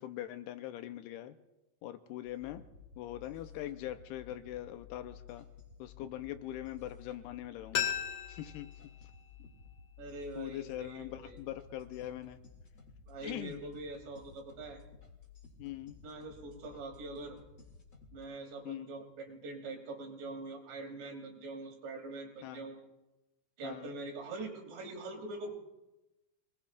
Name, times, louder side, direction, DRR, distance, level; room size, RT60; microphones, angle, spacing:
voice 1, 0.0-1.4 1.8-2.6 3.0-5.5 5.8-7.9 8.3-8.7 10.4-12.4 13.2-13.6 15.6-16.0 18.6-18.9 22.4-22.7 23.6-23.9, left 13 dB, 80° left, 8 dB, 2.6 m, -42 dB
sound 1, 2.2-18.2, left 6 dB, 25° left, 2.3 m, -55 dB
sound 2, 7.7-10.5 10.8-10.9, left 9 dB, 65° left, 2.5 m, -38 dB
voice 2, 10.0-11.4 13.1-14.8 16.0-17.4 18.1-22.9 23.6-25.5, right 2 dB, 90° right, 1 dB, 4.9 m, -44 dB
27.0 x 20.5 x 2.5 m, 1.0 s
omnidirectional pair, 4.8 m